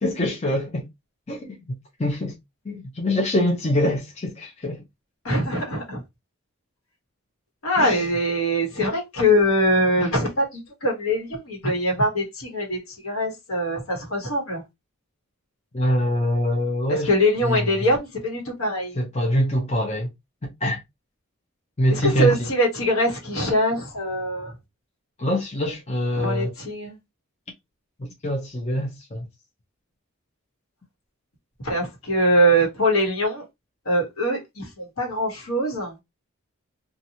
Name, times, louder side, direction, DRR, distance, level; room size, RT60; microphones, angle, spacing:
voice 1, 0.0-0.9 1.3-1.7 2.0-2.4 2.6-4.8 7.8-8.1 10.0-10.1 15.7-17.1 17.4-17.7 18.9-20.1 20.4-20.8 21.8-22.4 25.2-26.5 28.0-29.3, left 1 dB, 30° left, 0.7 m, -24 dB
voice 2, 5.2-6.0 7.6-14.6 16.9-19.0 21.9-24.5 26.2-27.0 31.6-33.4 33.8-36.0, equal, 80° left, 1.3 m, -23 dB
2.9 x 2.5 x 2.7 m
head